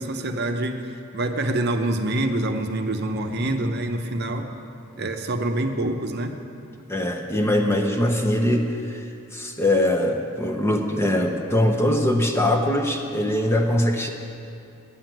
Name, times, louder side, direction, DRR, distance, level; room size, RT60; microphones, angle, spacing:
voice 1, 0.0-4.5 5.0-6.4, right 1 dB, 50° right, 5 dB, 0.7 m, -26 dB
voice 2, 6.9-9.1 9.3-14.1, left 1 dB, 10° left, 3 dB, 0.6 m, -22 dB
10.0 x 7.7 x 9.0 m, 2.6 s
head